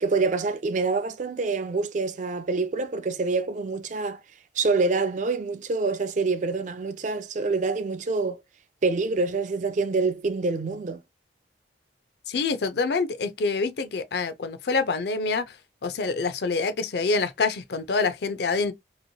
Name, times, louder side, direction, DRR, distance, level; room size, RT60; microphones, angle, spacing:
voice 1, 0.0-4.2 4.6-8.4 8.8-11.0, right 3 dB, 40° right, 0.4 m, -26 dB
voice 2, 12.3-15.5 15.8-18.7, left 4 dB, 60° left, 0.4 m, -26 dB
3.0 x 2.9 x 2.6 m
head